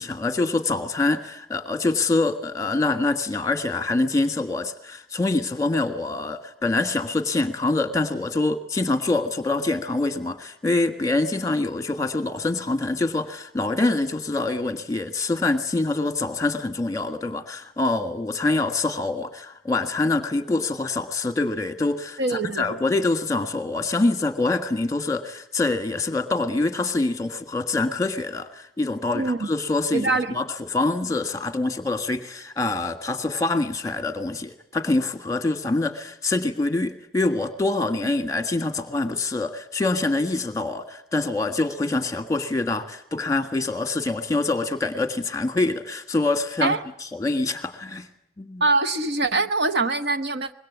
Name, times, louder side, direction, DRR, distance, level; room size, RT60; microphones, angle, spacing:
voice 1, 0.0-30.0 30.3-48.1 48.4-48.6, left 2 dB, 15° left, 9 dB, 1.5 m, -25 dB
voice 2, 22.2-22.8 29.1-29.5 29.9-30.4 46.6-46.8 48.6-50.5, right 3 dB, 50° right, 11 dB, 1.0 m, -23 dB
25.0 x 21.5 x 8.2 m, 0.75 s
head